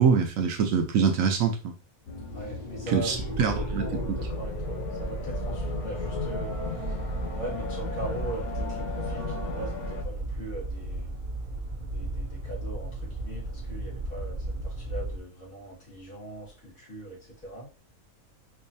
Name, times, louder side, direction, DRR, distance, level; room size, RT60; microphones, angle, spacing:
voice 1, 0.0-1.7 2.9-4.2, right 6 dB, 70° right, 1.0 m, -24 dB
sound 1, 2.1-10.0, left 4 dB, 90° left, 1.6 m, -36 dB
voice 2, 2.3-3.2 3.8-6.5 7.4-11.1 11.9-17.7, right 2 dB, 65° left, 2.4 m, -40 dB
sound 2, 3.1-15.2, right 2 dB, 55° right, 0.6 m, -34 dB
4.6 x 2.6 x 2.6 m
omnidirectional pair, 1.5 m